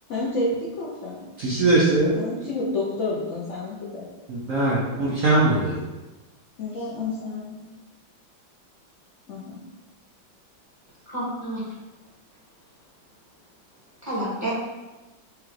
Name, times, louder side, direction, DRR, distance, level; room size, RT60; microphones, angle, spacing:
voice 1, 0.1-1.2 2.1-4.1 6.6-7.6 9.3-9.6, left 2 dB, 85° left, -5 dB, 0.6 m, -29 dB
voice 2, 1.4-2.2 4.3-5.8, right 2 dB, 70° right, -6 dB, 0.8 m, -21 dB
voice 3, 11.1-11.6 14.0-14.5, right 1 dB, 10° right, -10 dB, 1.1 m, -29 dB
4.9 x 2.3 x 3.1 m, 1.1 s
omnidirectional pair, 2.1 m